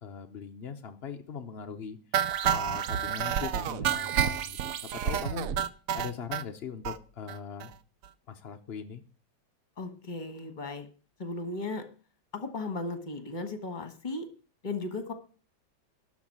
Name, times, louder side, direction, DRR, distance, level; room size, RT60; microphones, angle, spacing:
voice 1, 0.0-5.5 5.9-7.7 8.3-9.0, left 6 dB, 70° left, 6 dB, 0.5 m, -40 dB
sound 1, 2.1-6.4 6.8-7.0 7.3-7.4 7.6-7.7 8.0-8.1, right 9 dB, 75° right, 0.7 m, -29 dB
voice 2, 9.8-10.9 11.2-11.8 12.3-14.2 14.6-15.1, left 3 dB, 25° left, 8 dB, 1.5 m, -36 dB
12.5 x 4.7 x 8.6 m, 0.38 s
omnidirectional pair, 2.2 m